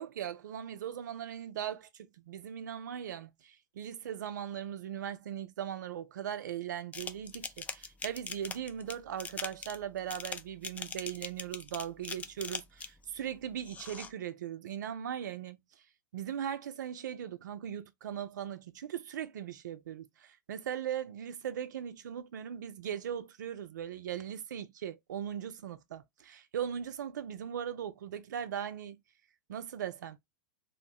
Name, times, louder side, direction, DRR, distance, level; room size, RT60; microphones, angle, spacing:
voice 1, 0.0-15.6 16.1-29.0 29.5-30.2, right 9 dB, 75° right, 0.4 m, -39 dB
sound 1, 6.9-13.0 13.6-14.1, left 5 dB, 15° left, 0.3 m, -41 dB
2.5 x 2.0 x 3.3 m
hypercardioid pair, 105°, 10 cm